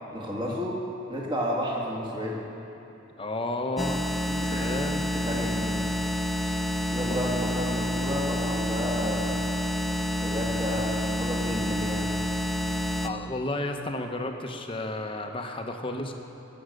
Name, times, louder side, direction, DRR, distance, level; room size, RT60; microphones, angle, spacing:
voice 1, 0.1-0.8 1.1-2.4 4.3-5.8 6.8-9.4 10.2-12.1, equal, 25° right, -3 dB, 1.7 m, -32 dB
voice 2, 3.2-4.0 4.4-5.1 6.4-6.6 7.1-7.2 13.0-16.1, left 2 dB, 25° left, 4 dB, 0.9 m, -32 dB
sound 1, 3.8-13.1, equal, ahead, 0.4 m, -28 dB
19.5 x 7.9 x 6.5 m, 2.9 s
head